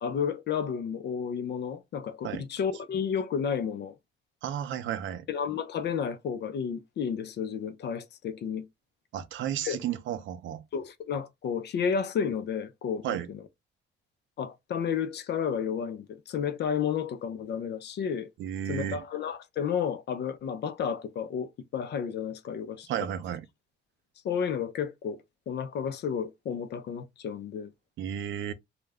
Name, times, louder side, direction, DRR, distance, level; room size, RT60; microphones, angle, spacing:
voice 1, 0.0-4.0 5.3-8.7 9.6-9.8 10.7-13.4 14.4-18.3 18.7-22.9 24.2-27.7, left 7 dB, 60° left, 0.5 m, -32 dB
voice 2, 4.4-5.2 9.1-10.6 13.0-13.3 18.4-19.0 22.9-23.5 28.0-28.5, right 10 dB, 75° right, 0.5 m, -33 dB
2.3 x 2.1 x 3.4 m
cardioid pair, 90°, 20 cm